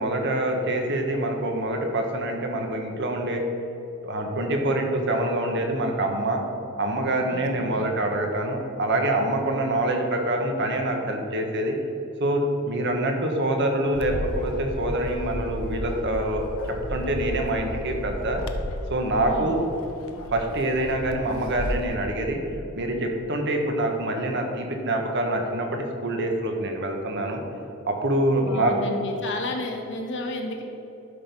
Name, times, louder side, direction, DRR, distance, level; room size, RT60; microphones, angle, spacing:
voice 1, 0.0-3.4 4.0-6.4 6.8-11.8 12.2-18.4 18.9-19.6 20.3-22.4 22.7-27.4 27.9-28.7, right 1 dB, 55° right, 3 dB, 1.4 m, -25 dB
Bark, 13.9-21.9, left 1 dB, 75° left, 0.7 m, -33 dB
voice 2, 19.2-19.6 28.4-30.6, left 2 dB, 55° left, 2 dB, 1.5 m, -32 dB
11.5 x 6.2 x 5.4 m, 3.0 s
head